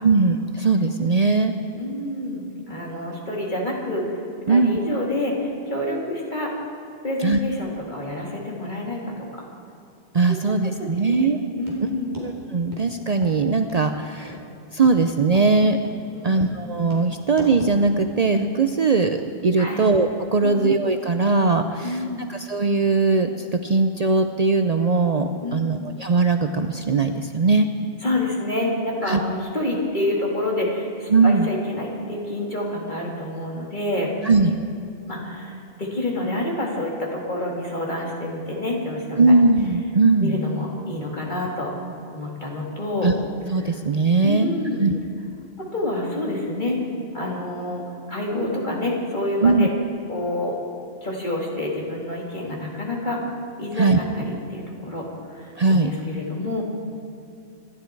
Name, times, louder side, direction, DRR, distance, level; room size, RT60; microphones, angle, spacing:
voice 1, 0.0-1.5 4.5-4.8 7.2-7.4 10.1-11.4 12.2-14.4 14.7-15.8 16.2-22.0 22.3-27.7 29.0-29.2 31.1-31.5 34.2-34.6 39.2-40.4 43.0-43.1 43.5-44.5 44.8-44.9 49.4-49.7 53.8-54.0 55.6-55.9, right 3 dB, 45° right, 6 dB, 0.6 m, -20 dB
voice 2, 1.7-6.5 7.0-9.4 10.8-12.1 16.1-16.4 19.6-19.9 20.4-20.6 21.8-22.2 25.4-25.8 28.0-34.1 35.1-39.3 40.2-41.7 42.1-43.1 43.6-43.8 44.2-44.9 45.6-46.8 47.1-49.7 50.1-50.6 51.0-53.2 53.6-56.6, left 1 dB, 45° left, -3 dB, 3.0 m, -28 dB
sound 1, 11.7-11.8 12.1-12.3 12.7-12.8 13.2-13.4 13.7-13.8 14.3-14.4 14.8-15.0 15.3-15.5 15.9-16.0 16.3-16.5 16.9-17.1 17.4-17.8, left 1 dB, 20° right, 3.5 m, -37 dB
26.5 x 12.0 x 4.6 m, 2.6 s
omnidirectional pair, 1.1 m